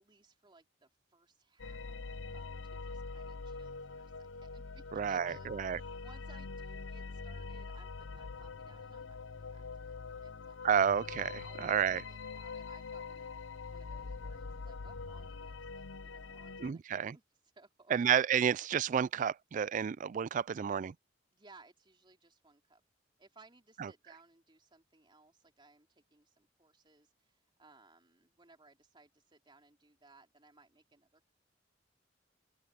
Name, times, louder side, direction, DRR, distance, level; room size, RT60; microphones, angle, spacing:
voice 1, 0.0-9.9 10.2-10.7 11.3-13.4 13.7-17.2 17.5-17.9 21.3-22.8 23.2-31.3, right 3 dB, 25° right, 3.1 m, -62 dB
sound 1, 1.6-16.7, left 4 dB, 85° left, 0.7 m, -44 dB
voice 2, 4.9-5.8 10.6-12.0 16.6-17.2 17.9-20.9 23.8-23.9, right 8 dB, 45° right, 0.3 m, -31 dB
open air
head